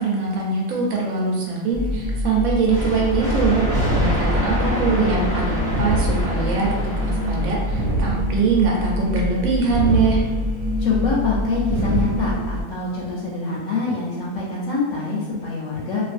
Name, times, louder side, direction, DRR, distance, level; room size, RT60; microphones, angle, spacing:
voice 1, 0.0-3.6 3.9-10.2, right 4 dB, 75° right, -2 dB, 1.0 m, -22 dB
sound 1, 1.7-12.6, left 1 dB, 50° right, 0.6 m, -26 dB
sound 2, 2.7-8.3, equal, 5° left, 0.9 m, -27 dB
sound 3, 3.6-4.7 5.6-6.7 7.6-8.7 9.6-10.7 11.6-12.7, right 2 dB, 90° right, 1.2 m, -26 dB
voice 2, 10.8-16.0, left 3 dB, 70° left, -4 dB, 0.8 m, -25 dB
2.5 x 2.4 x 2.4 m, 1.1 s
omnidirectional pair, 1.6 m